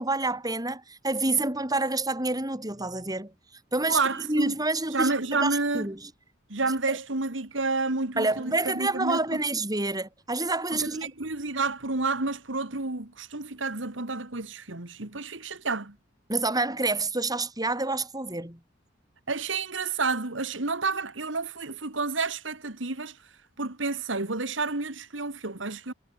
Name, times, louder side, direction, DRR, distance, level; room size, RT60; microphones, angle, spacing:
voice 1, 0.0-3.3 3.7-4.0 4.3-6.1 6.9-7.0 8.2-11.1 16.3-18.6, right 2 dB, 20° right, 6.6 m, -28 dB
voice 2, 3.9-4.6 4.9-5.9 6.5-9.4 10.7-15.9 19.3-23.2 23.6-25.9, right 3 dB, 80° right, 2.3 m, -30 dB
head